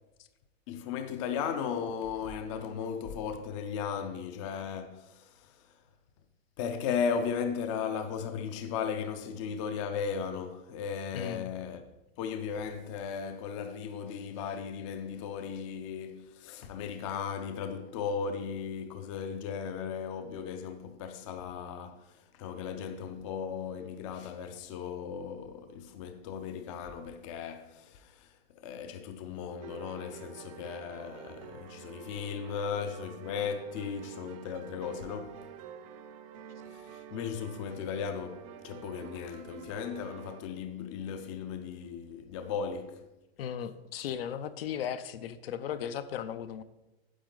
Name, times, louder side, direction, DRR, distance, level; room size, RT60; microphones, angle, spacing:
voice 1, 0.7-5.5 6.6-11.8 12.2-22.0 22.3-28.3 28.5-35.4 36.7-43.0, left 6 dB, 30° left, 0.5 m, -36 dB
voice 2, 11.1-11.5 43.4-46.6, left 9 dB, 65° left, 0.7 m, -36 dB
sound 1, 29.6-40.4, right 9 dB, 35° right, 0.6 m, -48 dB
9.9 x 7.2 x 3.8 m
supercardioid pair, 170°, 31 cm